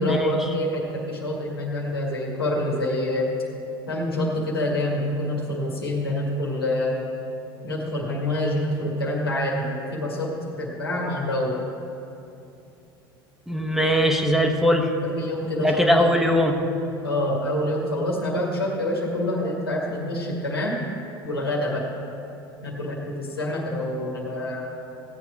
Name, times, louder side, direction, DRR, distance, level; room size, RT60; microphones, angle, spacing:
voice 1, 0.0-3.3 3.9-7.1 7.6-11.6 15.0-16.1 17.0-20.8 21.2-21.9 22.6-24.6, left 1 dB, 85° left, -3 dB, 2.0 m, -26 dB
voice 2, 13.5-14.9 15.6-16.5, equal, 5° right, 2 dB, 1.3 m, -20 dB
16.0 x 8.3 x 4.7 m, 2.8 s
figure-of-eight pair, 70°, 12 cm